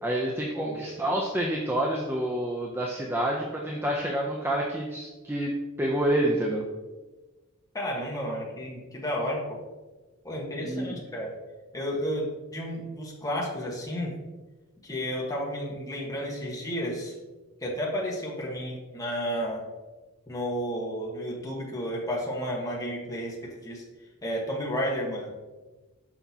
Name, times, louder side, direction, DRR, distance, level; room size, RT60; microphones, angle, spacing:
voice 1, 0.0-6.6 10.6-11.0, right 1 dB, 10° right, -1 dB, 0.5 m, -28 dB
voice 2, 7.7-9.6 10.2-11.3 11.7-14.1 14.8-17.1 17.6-19.6 20.3-23.8 24.2-25.3, equal, 15° left, -4 dB, 1.2 m, -32 dB
6.1 x 5.6 x 2.8 m, 1.2 s
head